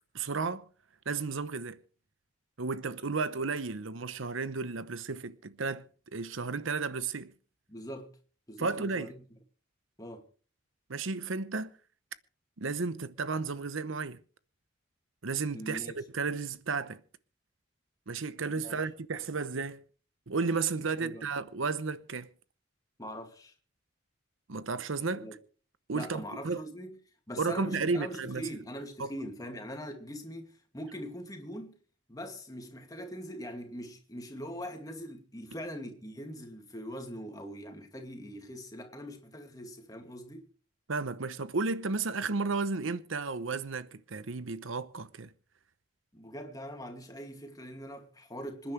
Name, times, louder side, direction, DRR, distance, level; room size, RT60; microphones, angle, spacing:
voice 1, 0.1-0.7 1.1-1.8 2.6-5.9 6.1-7.3 8.6-9.1 10.9-11.7 12.6-14.2 15.2-17.0 18.1-19.8 20.3-22.3 24.5-25.3 25.9-26.6 27.4-28.5 29.0-29.1 40.9-45.3, right 4 dB, 80° right, 0.9 m, -33 dB
voice 2, 7.7-8.1 8.5-9.3 10.0-10.3 15.5-15.9 18.6-18.8 21.0-21.3 23.0-23.5 25.1-25.4 25.9-27.0 27.3-31.7 32.1-40.5 46.1-48.7, equal, 20° left, 2.4 m, -42 dB
26.5 x 10.0 x 3.3 m
head